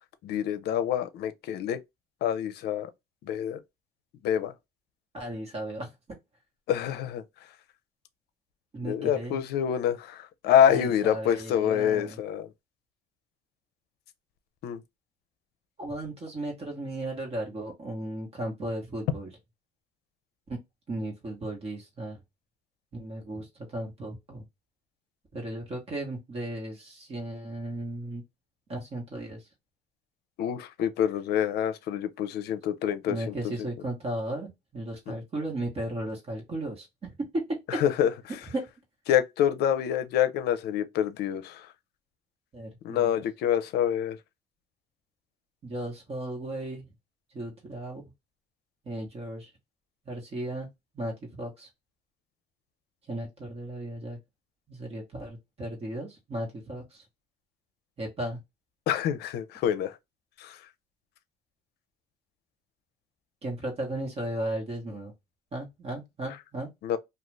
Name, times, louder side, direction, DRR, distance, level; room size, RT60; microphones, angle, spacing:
voice 1, 0.2-1.8 2.2-2.9 3.2-3.6 4.2-4.5 6.7-7.2 8.8-12.5 14.6-14.8 30.4-33.7 35.1-35.2 37.7-38.1 39.1-41.7 42.8-44.2 58.9-60.0 60.4-60.6 66.8-67.0, left 9 dB, 75° left, 0.5 m, -26 dB
voice 2, 5.1-5.9 8.7-9.4 10.7-12.2 15.8-19.3 20.5-20.6 20.9-22.2 22.9-24.5 25.3-28.2 28.7-29.4 33.1-37.1 38.5-38.6 42.5-43.1 45.6-46.9 47.3-48.0 48.8-49.5 50.1-50.7 50.9-51.7 53.1-54.2 54.7-57.0 58.0-58.4 63.4-65.1 65.5-66.7, right 1 dB, 35° right, 1.2 m, -35 dB
2.5 x 2.3 x 3.1 m
cardioid pair, 110°, 17 cm